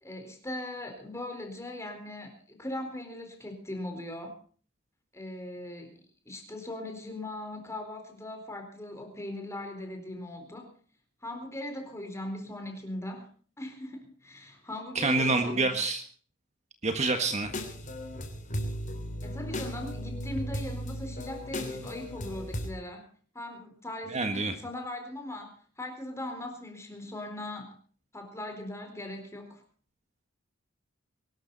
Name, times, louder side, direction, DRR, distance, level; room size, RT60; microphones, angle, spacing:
voice 1, 0.0-4.4 5.1-6.0 6.3-10.7 11.2-13.3 13.6-15.9 19.2-23.1 23.3-27.8 28.1-29.6, left 1 dB, 15° left, 4 dB, 4.3 m, -39 dB
voice 2, 14.9-16.0 16.8-17.5 24.1-24.5, right 3 dB, 35° right, 6 dB, 1.6 m, -27 dB
sound 1, 17.4-22.7, equal, 40° left, 3.3 m, -36 dB
23.0 x 13.0 x 4.1 m, 0.43 s
head